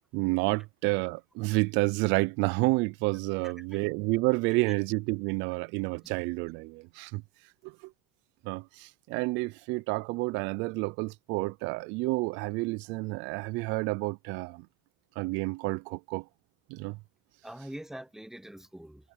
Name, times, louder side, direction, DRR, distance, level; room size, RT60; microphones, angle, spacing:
voice 1, 0.1-7.2 7.6-7.9 8.4-14.7 15.2-16.3 16.7-17.0, right 25 dB, 70° right, 0.5 m, -30 dB
voice 2, 3.4-3.8 6.0-6.1 17.4-19.1, right 1 dB, ahead, 0.8 m, -44 dB
cardioid pair, 125°, 20 cm